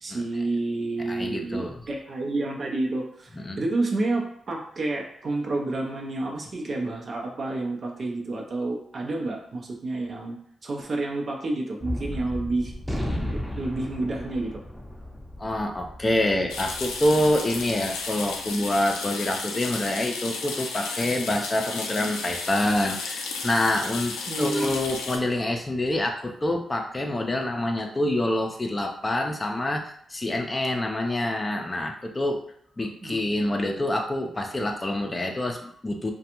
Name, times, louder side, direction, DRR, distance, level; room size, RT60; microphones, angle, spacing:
voice 1, 0.0-10.4 10.6-12.7 13.3-14.6 24.3-24.7 33.0-33.6, right 2 dB, 55° right, 1 dB, 0.6 m, -29 dB
voice 2, 1.1-1.8 3.3-3.6 15.4-32.4 32.8-36.1, left 1 dB, 30° left, 3 dB, 0.5 m, -26 dB
Gunshot gunfire, 11.8-18.4, left 1 dB, ahead, 0.7 m, -35 dB
sound 1, 16.5-25.2, left 4 dB, 90° left, 0.3 m, -33 dB
2.4 x 2.2 x 2.9 m, 0.67 s
hypercardioid pair, 40°, 0 cm